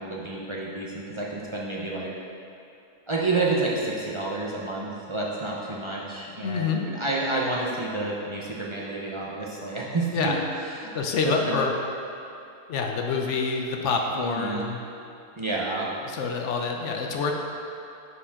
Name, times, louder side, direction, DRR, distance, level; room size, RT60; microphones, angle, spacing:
voice 1, 0.0-2.1 3.1-10.3 10.7-10.9 11.5-11.6 14.2-14.7 15.4-15.9, right 2 dB, 35° right, -5 dB, 0.4 m, -29 dB
voice 2, 6.4-6.9 10.1-10.4 10.9-11.7 12.7-14.8 16.0-17.3, left 4 dB, 60° left, 2 dB, 0.8 m, -27 dB
9.6 x 4.9 x 3.6 m, 2.7 s
omnidirectional pair, 1.6 m